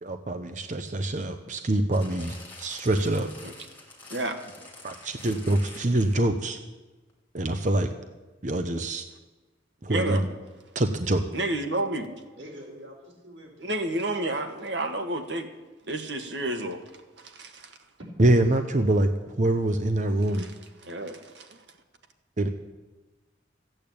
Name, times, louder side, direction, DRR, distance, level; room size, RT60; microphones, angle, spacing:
voice 1, 0.0-3.3 4.8-6.6 7.3-7.9 8.4-9.0 9.8-10.3 10.7-11.2 18.2-20.5 22.4-22.5, right 1 dB, 40° right, 7 dB, 0.8 m, -25 dB
sound 1, 1.9-6.4 7.1-7.2, left 3 dB, 10° left, 2.9 m, -47 dB
voice 2, 9.9-10.2 11.3-12.1 13.6-15.5 15.9-16.8 17.2-17.8 20.3-20.5 20.8-21.5, right 2 dB, 65° right, 6 dB, 1.6 m, -30 dB
voice 3, 12.4-13.9 18.0-18.1 18.5-18.6, equal, 90° right, -1 dB, 4.3 m, -45 dB
14.0 x 8.7 x 8.7 m, 1.2 s
head